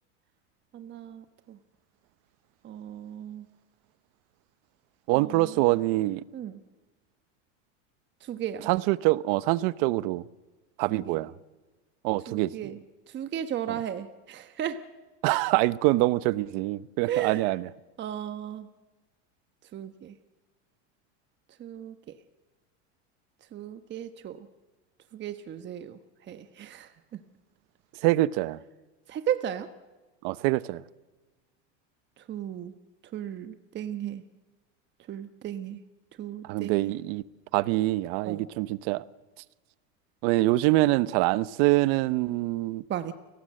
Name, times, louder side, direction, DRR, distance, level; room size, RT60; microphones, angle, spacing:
voice 1, 0.7-1.6 2.6-3.5 5.1-5.8 6.3-6.6 8.2-8.7 10.9-11.2 12.3-12.8 13.1-14.8 17.1-17.4 18.0-18.7 19.7-20.1 21.6-22.2 23.5-24.5 25.1-26.0 26.3-27.2 29.1-29.7 32.2-32.7 33.1-34.2 35.1-35.8 36.2-37.0 38.3-38.4 42.9-43.1, right 10 dB, 30° right, 1.2 m, -35 dB
voice 2, 5.1-6.2 8.6-10.2 10.8-11.3 12.0-12.7 13.7-13.8 15.2-17.7 28.0-28.6 30.2-30.8 36.4-37.2 37.5-39.0 40.2-42.8, right 19 dB, 60° right, 0.9 m, -25 dB
29.5 x 19.0 x 7.7 m
supercardioid pair, 125°, 35 cm